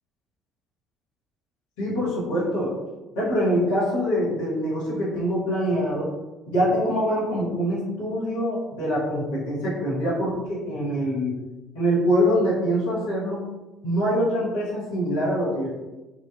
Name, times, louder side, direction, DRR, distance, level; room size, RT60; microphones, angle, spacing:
voice 1, 1.8-2.8 3.1-6.1 6.5-11.4 11.7-13.5 13.8-15.8, equal, 65° left, -7 dB, 1.0 m, -24 dB
3.2 x 2.3 x 2.3 m, 1.1 s
figure-of-eight pair, 55°, 0 cm